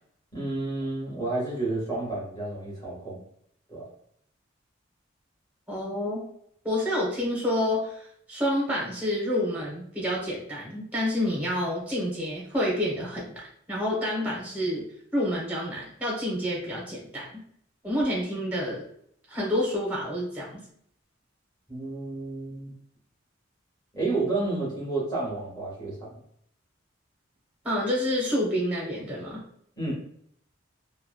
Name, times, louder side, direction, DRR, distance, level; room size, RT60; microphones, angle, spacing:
voice 1, 0.3-3.2 3.7-3.8 21.7-22.7 23.9-26.1 29.8-29.9, right 2 dB, 20° left, -6 dB, 1.4 m, -30 dB
voice 2, 5.7-6.2 6.6-14.8 15.1-17.3 17.8-18.8 19.3-20.6 27.6-29.4, left 1 dB, 10° right, -4 dB, 0.8 m, -28 dB
3.0 x 2.2 x 2.2 m, 0.67 s
head